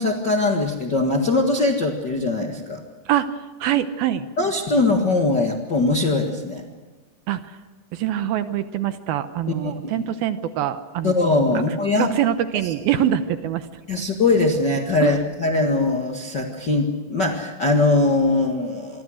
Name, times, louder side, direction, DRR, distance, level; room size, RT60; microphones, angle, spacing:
voice 1, 0.0-2.8 4.4-6.7 9.6-10.1 11.0-12.1 13.9-19.0, left 2 dB, 50° left, 2 dB, 1.3 m, -21 dB
voice 2, 3.1-4.3 7.3-7.6 7.9-11.2 11.5-13.7 15.0-15.2, right 11 dB, 75° right, 10 dB, 2.5 m, -24 dB
27.0 x 23.0 x 6.4 m, 1.3 s
omnidirectional pair, 4.9 m